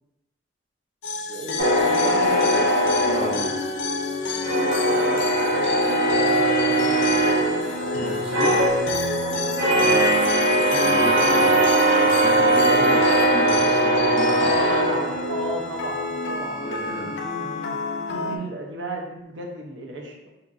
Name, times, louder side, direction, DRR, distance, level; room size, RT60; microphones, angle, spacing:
sound 1, 1.0-18.4, left 3 dB, 65° left, 0.3 m, -29 dB
voice 1, 1.3-2.8 4.8-7.1 9.6-10.1 11.4-11.7 12.0-12.1 14.4-16.6 16.9-17.8 18.1-20.3, right 1 dB, 85° right, 1 dB, 0.7 m, -34 dB
sound 2, 1.6-4.0 4.4-15.6, right 1 dB, 70° right, 1.1 m, -20 dB
voice 2, 3.0-3.5 8.0-8.6 10.8-11.6 12.0-14.5 16.6-17.1, right 2 dB, 30° right, 0 dB, 0.6 m, -32 dB
Keyboard (musical), 8.6-11.0, right 1 dB, 25° left, 0.8 m, -32 dB
3.8 x 2.8 x 2.4 m, 0.93 s
head